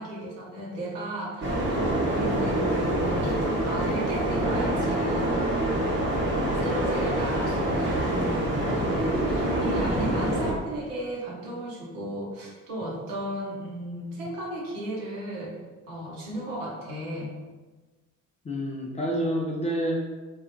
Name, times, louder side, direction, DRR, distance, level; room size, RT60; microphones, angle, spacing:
voice 1, 0.0-3.3 3.7-5.3 6.6-15.5 15.9-17.3, right 1 dB, 65° right, -4 dB, 0.9 m, -35 dB
sound 1, 1.4-10.5, right 1 dB, 25° right, 0.9 m, -26 dB
voice 2, 6.3-6.8 18.4-20.0, equal, 15° left, -3 dB, 0.4 m, -29 dB
3.3 x 2.2 x 2.8 m, 1.3 s
figure-of-eight pair, 45°, 45 cm